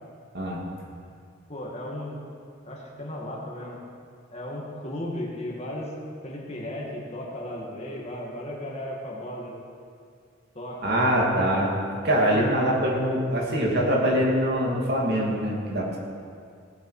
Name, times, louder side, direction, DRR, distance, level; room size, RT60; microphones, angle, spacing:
voice 1, 1.5-2.2 2.6-3.8 4.3-5.9 6.2-9.5 10.5-11.0, left 1 dB, 35° left, -3 dB, 2.2 m, -35 dB
voice 2, 10.8-11.7 12.0-16.0, equal, 55° right, -3 dB, 2.5 m, -23 dB
18.0 x 8.1 x 5.0 m, 2.2 s
head